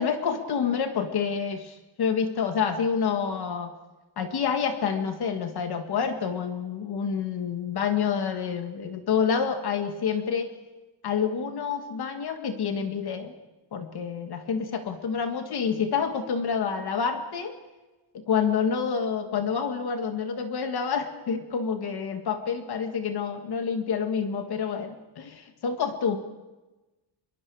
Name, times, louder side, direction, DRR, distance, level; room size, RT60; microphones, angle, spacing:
voice 1, 0.0-3.7 4.2-10.5 11.0-13.3 13.7-17.6 18.1-26.2, left 6 dB, 55° left, 6 dB, 1.7 m, -28 dB
26.0 x 23.0 x 4.7 m, 1.1 s
cardioid pair, 175°, 46 cm